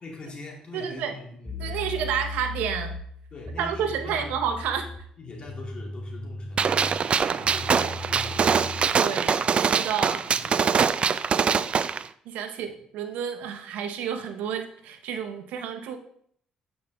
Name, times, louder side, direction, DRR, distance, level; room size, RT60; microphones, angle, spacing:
voice 1, 0.0-1.8 3.3-4.3 5.2-6.8 7.1-8.6 10.0-10.5 12.5-12.7, left 3 dB, 40° left, -1 dB, 2.7 m, -43 dB
voice 2, 0.7-1.1 1.6-2.9 3.6-4.9 8.9-10.2 12.3-16.0, right 8 dB, 75° right, 7 dB, 0.7 m, -30 dB
sound 1, 1.4-9.0, left 2 dB, 5° left, 1.3 m, -38 dB
Gunshot gunfire, 6.6-12.0, right 6 dB, 45° right, 0.4 m, -23 dB
8.7 x 5.4 x 3.4 m, 0.64 s
supercardioid pair, 60°, 3 cm